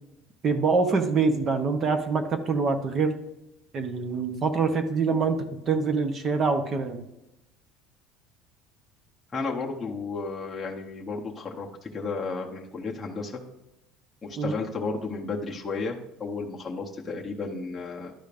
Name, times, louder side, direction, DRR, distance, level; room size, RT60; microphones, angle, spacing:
voice 1, 0.4-3.2 3.7-7.0 14.4-14.5, right 4 dB, 25° right, 7 dB, 0.8 m, -25 dB
voice 2, 9.3-13.4 14.2-18.1, left 4 dB, 10° left, -3 dB, 0.8 m, -33 dB
11.5 x 5.1 x 2.5 m, 0.90 s
cardioid pair, 175°, 0 cm